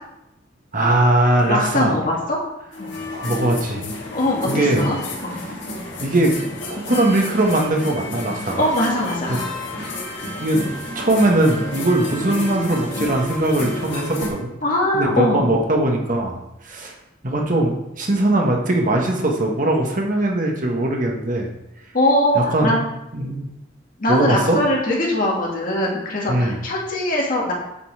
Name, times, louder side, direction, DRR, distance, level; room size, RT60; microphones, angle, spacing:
voice 1, 0.7-2.0 3.1-3.9 4.4-4.8 6.0-8.6 10.4-10.7 10.9-14.5 14.9-16.4 16.6-16.9 17.2-21.5 22.3-22.7 23.1-23.5 24.1-24.6 26.3-26.6, right 1 dB, 45° right, 0 dB, 1.4 m, -20 dB
voice 2, 1.4-2.4 2.8-2.9 4.1-5.0 5.2-5.4 8.5-9.4 14.6-15.5 21.9-22.8 24.0-27.5, left 1 dB, 45° left, -3 dB, 2.3 m, -21 dB
sound 1, 2.7-14.3, left 1 dB, 70° left, 2.1 m, -31 dB
8.5 x 5.5 x 4.8 m, 0.88 s
head